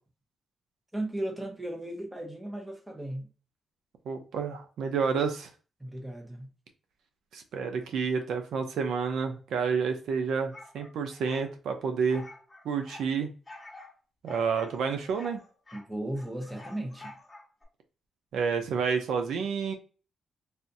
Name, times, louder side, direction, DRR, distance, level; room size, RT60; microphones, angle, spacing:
voice 1, 0.9-3.3 5.8-6.5 15.7-17.2, right 1 dB, 5° right, 0.8 m, -36 dB
voice 2, 4.1-5.5 7.3-12.2 12.6-13.3 14.2-15.4 18.3-19.7, right 5 dB, 90° right, 0.6 m, -29 dB
sound 1, 10.5-11.5 12.1-13.1 13.5-13.9 14.3-15.9 16.1-17.6, left 2 dB, 10° left, 1.2 m, -49 dB
3.5 x 2.6 x 2.6 m
cardioid pair, 135°, 0 cm